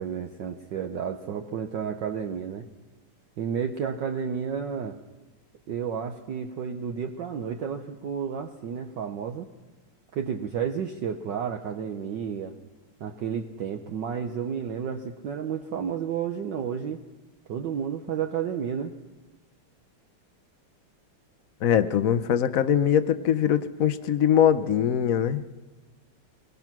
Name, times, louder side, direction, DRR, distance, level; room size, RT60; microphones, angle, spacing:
voice 1, 0.0-2.7 3.4-5.0 5.7-9.5 10.1-12.5 13.0-17.0 17.5-18.9, right 7 dB, 65° right, 5 dB, 1.4 m, -31 dB
voice 2, 21.6-25.4, left 9 dB, 70° left, 11 dB, 0.8 m, -22 dB
21.5 x 21.0 x 6.1 m, 1.2 s
omnidirectional pair, 2.4 m